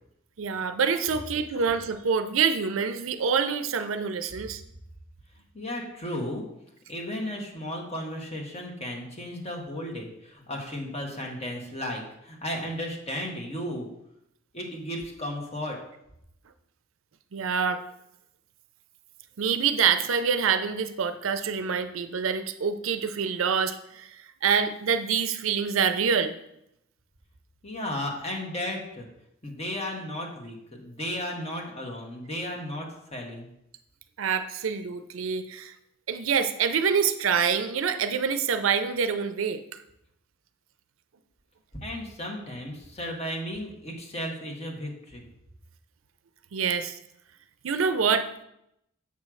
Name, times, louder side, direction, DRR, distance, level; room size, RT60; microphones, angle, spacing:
voice 1, 0.4-4.6 17.3-17.8 19.4-26.3 34.2-35.7 36.1-39.6 46.5-47.0 47.6-48.3, right 6 dB, 75° right, 10 dB, 0.5 m, -26 dB
voice 2, 5.5-6.4 6.9-13.9 14.5-15.8 27.6-29.1 29.4-33.5 41.8-45.2, left 1 dB, 30° left, 1 dB, 1.3 m, -34 dB
7.2 x 3.2 x 6.1 m, 0.80 s
head